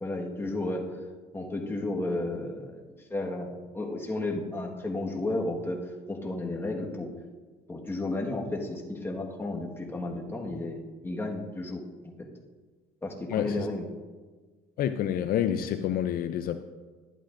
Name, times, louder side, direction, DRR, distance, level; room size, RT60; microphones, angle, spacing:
voice 1, 0.0-0.9 1.3-2.8 3.1-7.1 7.7-12.3 13.0-13.9, left 2 dB, 15° left, 1.4 m, -33 dB
voice 2, 13.3-13.7 14.8-16.6, left 10 dB, 60° left, 0.4 m, -28 dB
11.5 x 11.0 x 2.5 m
cardioid pair, 110°, 17 cm